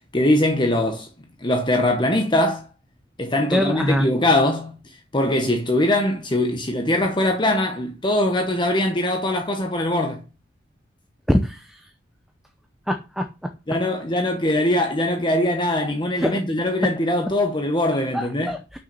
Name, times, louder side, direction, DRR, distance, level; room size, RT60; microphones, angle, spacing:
voice 1, 0.1-1.1 1.4-2.6 3.2-4.8 5.1-10.2 13.7-18.6, left 1 dB, 25° left, 0.9 m, -21 dB
voice 2, 3.5-4.1 11.3-11.8 12.9-13.2 16.2-16.4 18.1-18.8, equal, ahead, 0.7 m, -23 dB
6.5 x 6.1 x 6.7 m
head